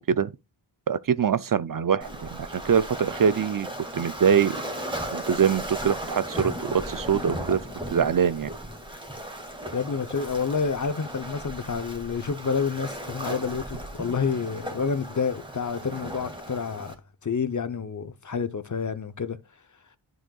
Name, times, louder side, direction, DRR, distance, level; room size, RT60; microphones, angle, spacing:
voice 1, 0.9-3.7 3.9-4.6 5.1-7.6 7.9-8.5, right 7 dB, 50° right, 0.5 m, -23 dB
Waves surf, 2.0-16.9, right 1 dB, 10° right, 1.9 m, -36 dB
voice 2, 9.7-16.9 17.2-19.4, left 5 dB, 45° left, 0.8 m, -29 dB
11.0 x 6.2 x 2.3 m
wide cardioid pair, 60°, 44 cm